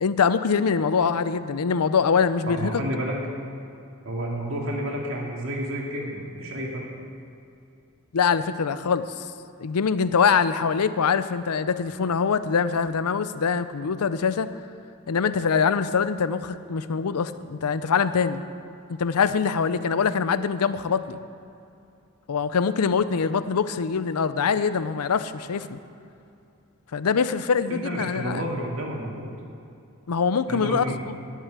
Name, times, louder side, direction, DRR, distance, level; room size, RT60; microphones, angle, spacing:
voice 1, 0.0-2.8 8.1-9.2 9.6-14.5 15.1-18.4 18.9-21.2 22.3-25.8 26.9-28.4 30.1-31.1, left 6 dB, 85° left, 13 dB, 0.5 m, -24 dB
voice 2, 2.5-3.2 4.0-6.8 27.7-29.3 30.5-31.0, right 1 dB, 60° right, -1 dB, 2.2 m, -30 dB
11.5 x 7.5 x 8.1 m, 2.6 s
head